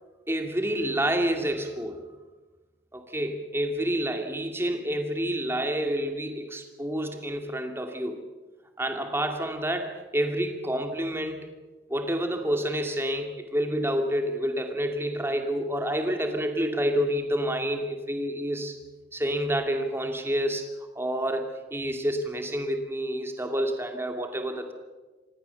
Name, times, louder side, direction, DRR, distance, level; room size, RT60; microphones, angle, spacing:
voice 1, 0.3-2.1 2.9-8.2 8.8-11.5 11.9-18.8 19.1-20.7 21.0-24.7, equal, 15° right, 4 dB, 2.3 m, -28 dB
26.0 x 18.5 x 7.0 m, 1.2 s
head